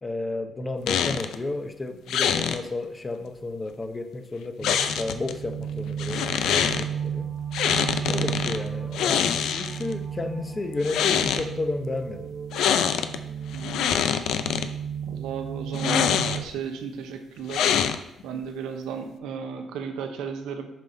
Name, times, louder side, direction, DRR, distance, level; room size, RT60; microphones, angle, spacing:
voice 1, 0.0-7.3 8.1-12.3, left 2 dB, 25° left, 7 dB, 0.8 m, -32 dB
sound 1, 0.9-1.4 2.1-2.6 4.6-5.3 6.0-6.8 7.5-8.6 8.9-9.9 10.7-11.5 12.5-13.2 13.5-14.7 15.7-16.6 17.5-18.2, left 8 dB, 80° left, 0.5 m, -24 dB
sound 2, 4.6-16.4, right 8 dB, 45° right, 0.4 m, -34 dB
voice 2, 13.5-14.0 15.0-17.8 18.2-20.7, right 6 dB, 90° right, 6 dB, 0.8 m, -35 dB
7.3 x 5.6 x 3.9 m, 0.84 s
cardioid pair, 90°, 0 cm